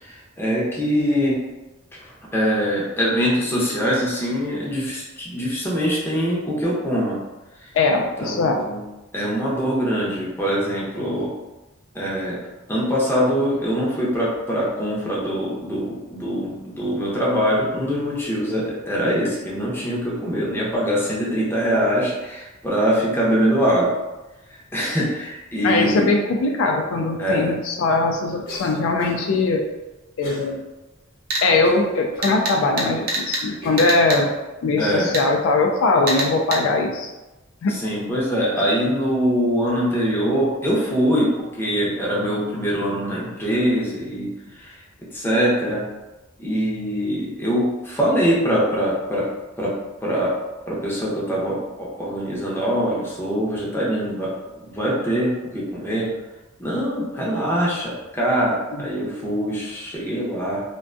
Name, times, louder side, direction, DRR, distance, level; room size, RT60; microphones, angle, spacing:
voice 1, 0.0-1.4 1.9-2.0 2.3-7.2 7.6-7.7 8.0-8.8 9.1-11.3 11.9-12.4 12.7-23.9 24.7-26.1 27.2-27.5 34.8-35.1 37.7-44.3 44.5-44.8 45.1-45.8 46.4-49.3 49.6-49.7 50.0-50.3 50.7-54.3 54.7-56.1 56.6-60.6, equal, 10° left, -6 dB, 0.6 m, -23 dB
voice 2, 7.7-8.6 25.6-29.6 30.2-30.6 31.4-34.3 34.6-37.1 37.6-37.7 58.7-58.8, left 3 dB, 75° left, 2 dB, 0.3 m, -20 dB
Cough, 28.5-29.3 30.2-30.5 31.0-31.1 31.6-32.3 32.9-33.0 33.6-33.9, equal, 45° left, 0.9 m, -39 dB
sound 1, 31.3-31.5 32.2-33.4 33.8-34.2 35.1-35.3 36.1-36.6, right 2 dB, 45° right, 0.5 m, -25 dB
2.5 x 2.2 x 2.5 m, 1.1 s
head